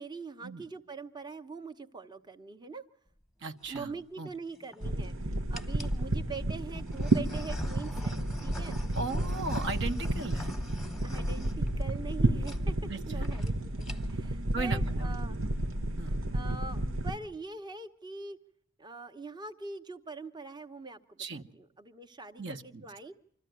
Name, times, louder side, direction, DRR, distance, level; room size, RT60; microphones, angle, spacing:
voice 1, 0.0-2.8 3.7-8.8 11.0-15.4 16.3-18.4 18.8-23.1, right 4 dB, 20° right, 6 dB, 0.9 m, -43 dB
sound 1, 3.4-3.8 4.5-5.1 5.5-6.0 6.7-12.2 12.4-12.6 12.9-13.0 13.2-13.5 13.8-14.3, left 1 dB, ahead, 1.1 m, -42 dB
voice 2, 3.4-3.9 4.2-4.3 8.9-10.5 12.9-13.3 14.5-15.2 16.0-16.1 21.2-21.4 22.4-22.8, right 3 dB, 65° right, 7 dB, 1.1 m, -37 dB
sound 2, 4.8-17.2, right 1 dB, 90° right, 1.1 m, -31 dB
25.5 x 14.0 x 9.2 m, 0.66 s
head